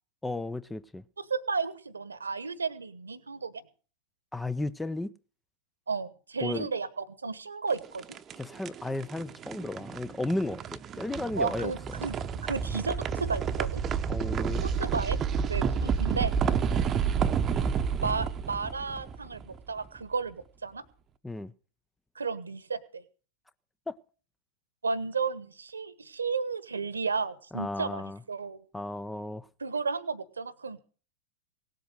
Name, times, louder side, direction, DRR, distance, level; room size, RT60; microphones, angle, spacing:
voice 1, 0.2-1.0 4.3-5.1 6.4-6.7 8.4-11.7 14.1-14.6 21.2-21.5 23.9-24.0 27.5-28.2 28.7-29.5, left 2 dB, 5° left, 0.6 m, -34 dB
voice 2, 1.2-3.6 5.9-8.0 11.3-12.1 12.4-13.8 14.6-15.2 15.5-16.5 18.0-20.8 22.1-23.0 24.8-28.6 29.6-30.8, right 4 dB, 75° right, 1.2 m, -33 dB
sound 1, 7.7-19.8, right 7 dB, 25° right, 0.9 m, -30 dB
18.0 x 7.8 x 6.5 m
figure-of-eight pair, 90°, 0 cm